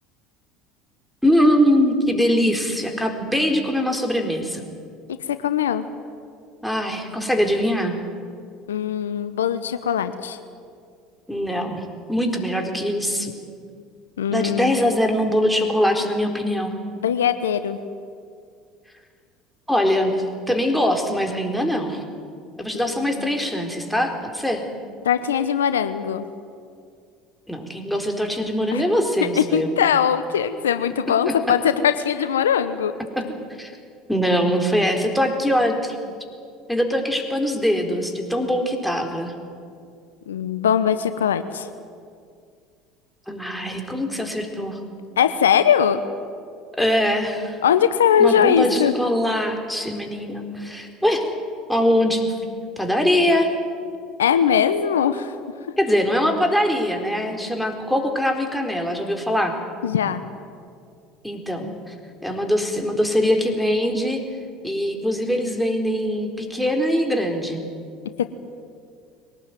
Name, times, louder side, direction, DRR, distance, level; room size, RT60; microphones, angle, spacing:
voice 1, 1.2-4.6 6.6-8.0 11.3-13.3 14.3-16.8 19.7-22.0 22.6-24.6 27.5-29.7 31.3-31.4 33.2-33.3 33.6-33.7 34.1-36.0 36.7-39.3 43.3-44.8 46.7-47.6 48.2-51.3 51.7-52.3 52.8-53.5 55.8-59.5 61.2-61.9 62.2-64.2 64.6-67.6, equal, ahead, 3 dB, 4.2 m, -22 dB
voice 2, 5.4-5.8 8.7-10.4 14.2-14.7 17.0-17.8 22.7-23.3 25.0-26.2 28.7-28.8 29.4-32.9 40.3-41.7 45.2-46.0 47.6-48.9 54.2-55.3 59.8-60.2, left 8 dB, 85° left, 11 dB, 0.9 m, -20 dB
22.5 x 18.5 x 9.3 m, 2.3 s
hypercardioid pair, 70°, 0 cm